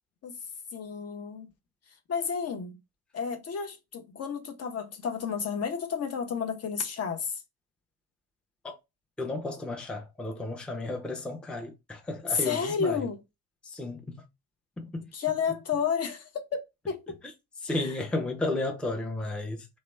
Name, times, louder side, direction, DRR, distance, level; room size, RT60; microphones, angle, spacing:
voice 1, 0.7-1.5 2.1-2.8 3.1-7.4 12.3-13.2 15.1-16.6 16.9-17.2 17.7-17.9, left 6 dB, 35° left, 0.7 m, -31 dB
voice 2, 9.2-13.1 13.6-14.2 14.8-15.1 17.2-17.3 17.6-19.7, left 2 dB, ahead, 0.6 m, -33 dB
2.9 x 2.1 x 3.2 m
hypercardioid pair, 60°, 43 cm